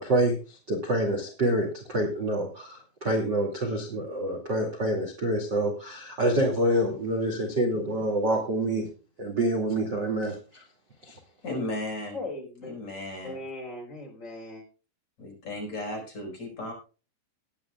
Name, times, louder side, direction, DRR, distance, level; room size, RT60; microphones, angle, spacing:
voice 1, 0.0-8.9 9.2-10.6 11.0-11.2, right 1 dB, 35° right, 0 dB, 2.0 m, -27 dB
voice 2, 11.4-12.2 12.6-13.4 15.2-16.7, left 1 dB, 35° left, 0 dB, 5.8 m, -35 dB
voice 3, 12.1-12.7 13.2-14.6, left 2 dB, 15° left, 0 dB, 4.2 m, -38 dB
19.0 x 10.5 x 2.4 m, 0.35 s
omnidirectional pair, 5.5 m